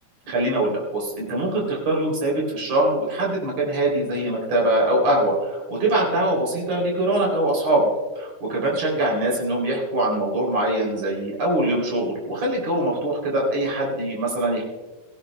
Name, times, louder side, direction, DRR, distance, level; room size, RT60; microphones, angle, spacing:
voice 1, 0.3-7.9 8.2-14.6, right 1 dB, 60° right, -2 dB, 4.3 m, -23 dB
17.0 x 15.5 x 2.2 m, 1.2 s
omnidirectional pair, 3.4 m